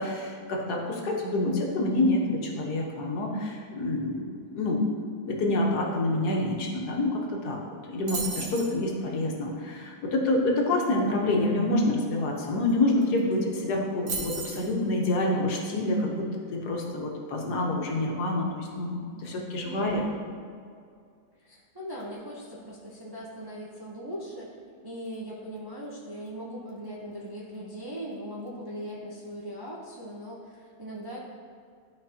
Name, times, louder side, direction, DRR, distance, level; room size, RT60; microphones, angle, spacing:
voice 1, 0.0-4.2 4.5-5.0 5.2-7.6 7.9-20.0, left 2 dB, 85° left, -1 dB, 1.6 m, -27 dB
sound 1, 8.1-8.7 12.7-12.8 13.0-13.3 14.1-14.7, right 4 dB, 55° right, 1.3 m, -34 dB
voice 2, 8.3-8.8 19.6-20.2 21.4-31.2, equal, 20° right, -6 dB, 0.7 m, -40 dB
12.5 x 4.6 x 2.8 m, 2.2 s
omnidirectional pair, 1.6 m